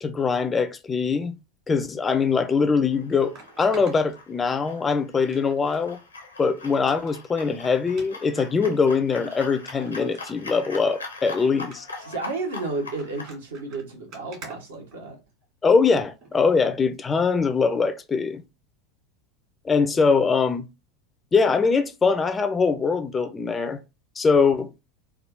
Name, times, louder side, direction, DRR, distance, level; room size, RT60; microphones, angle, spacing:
voice 1, 0.0-1.4 1.7-6.0 6.4-11.8 15.6-18.4 19.6-20.7 21.3-23.8 24.2-24.7, left 5 dB, 20° left, 0.4 m, -22 dB
sound 1, 2.3-2.4 3.3-4.8 5.3-5.9 6.2-6.3 6.7-7.2 7.9-8.1 8.8-8.9 9.3-9.4 9.7-10.8 11.2-11.4 11.7-12.0 12.7-15.4 16.2-16.4 16.9-17.0, right 3 dB, 45° right, 1.6 m, -47 dB
sound 2, 2.9-13.3, left 3 dB, 85° left, 0.7 m, -42 dB
voice 2, 12.0-15.2, right 3 dB, 75° right, 1.1 m, -32 dB
3.4 x 2.4 x 2.6 m
figure-of-eight pair, 80°, 0 cm